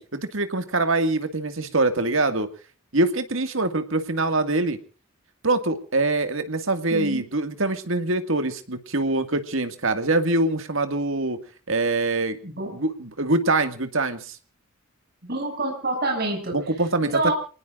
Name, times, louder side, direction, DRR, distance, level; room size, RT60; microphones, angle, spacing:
voice 1, 0.0-2.5 2.9-4.8 5.4-11.4 11.7-12.4 12.7-14.4 16.5-17.3, right 2 dB, 65° right, 8 dB, 2.0 m, -24 dB
voice 2, 6.9-7.2 12.4-12.8 15.2-16.6 17.0-17.3, right 2 dB, 45° right, 1 dB, 7.3 m, -27 dB
29.0 x 19.5 x 2.5 m, 0.39 s
head